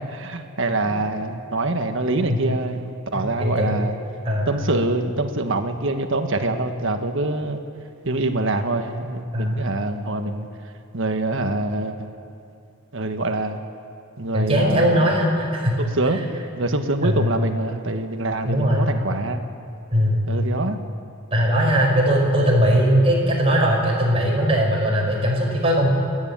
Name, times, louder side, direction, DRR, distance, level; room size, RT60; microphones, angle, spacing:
voice 1, 0.0-4.0 4.5-7.6 8.0-10.5 10.9-12.1 12.9-13.6 14.2-15.1 15.8-16.2 16.6-19.4 20.3-20.8, right 2 dB, 60° right, 6 dB, 1.4 m, -25 dB
voice 2, 3.1-3.8 4.2-4.5 9.3-9.6 14.3-15.7 16.2-16.3 17.0-17.3 18.4-18.9 19.9-20.2 21.3-25.9, equal, 25° right, -2 dB, 5.2 m, -20 dB
29.5 x 9.9 x 8.9 m, 2.4 s
head